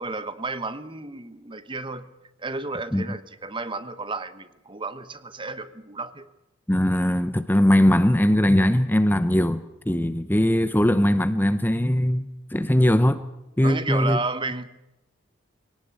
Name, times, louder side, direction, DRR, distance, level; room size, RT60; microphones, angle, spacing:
voice 1, 0.0-2.1 2.4-6.3 13.6-14.7, right 3 dB, 25° right, 1.1 m, -32 dB
voice 2, 6.7-13.2 13.6-14.2, left 1 dB, 10° left, 0.8 m, -20 dB
22.5 x 18.5 x 8.8 m
head